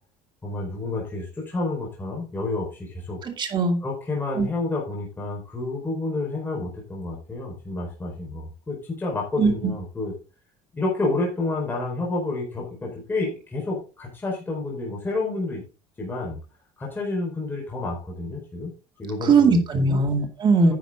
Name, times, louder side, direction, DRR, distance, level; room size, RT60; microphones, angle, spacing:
voice 1, 0.4-3.2 3.8-10.1 10.7-15.6 16.0-16.4 16.8-18.7 19.0-20.0, left 2 dB, 15° left, -3 dB, 4.5 m, -29 dB
voice 2, 3.2-3.8 4.4-4.5 9.4-9.5 19.2-20.7, right 4 dB, 30° right, 4 dB, 2.4 m, -19 dB
10.5 x 7.2 x 3.8 m, 0.32 s
cardioid pair, 155°, 15 cm